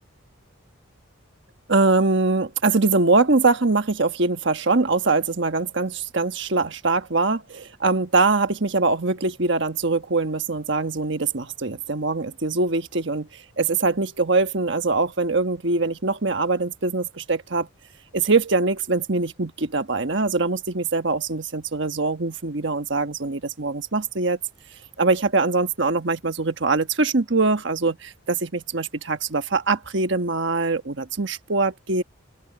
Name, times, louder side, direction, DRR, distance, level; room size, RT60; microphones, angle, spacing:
voice 1, 1.7-17.7 18.1-24.4 25.0-32.0, right 3 dB, 55° right, 1.3 m, -23 dB
open air
head